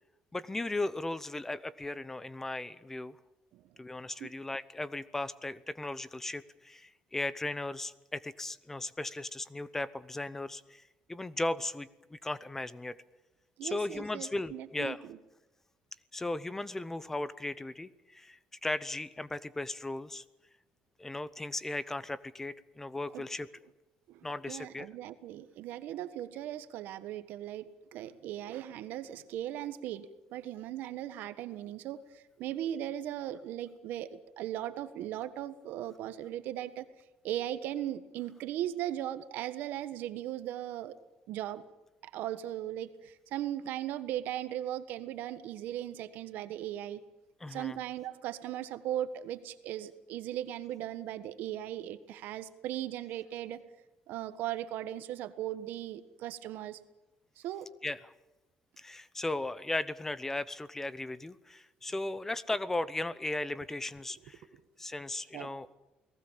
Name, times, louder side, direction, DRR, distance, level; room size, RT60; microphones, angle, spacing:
voice 1, 0.3-3.2 3.8-10.8 11.1-13.0 13.6-15.0 16.1-20.2 21.0-23.5 24.2-24.9 47.4-47.8 57.8-58.1 58.8-64.4 64.8-65.7, left 2 dB, 10° left, 16 dB, 0.8 m, -36 dB
voice 2, 13.6-15.2 23.1-23.2 24.1-36.9 37.2-40.9 41.3-41.6 42.0-47.0 47.5-53.6 54.1-56.8 57.4-57.7 64.1-64.2 64.5-64.6 65.3-65.6, right 12 dB, 80° right, 11 dB, 1.4 m, -38 dB
29.0 x 19.0 x 7.4 m, 1.0 s
cardioid pair, 135°, 3 cm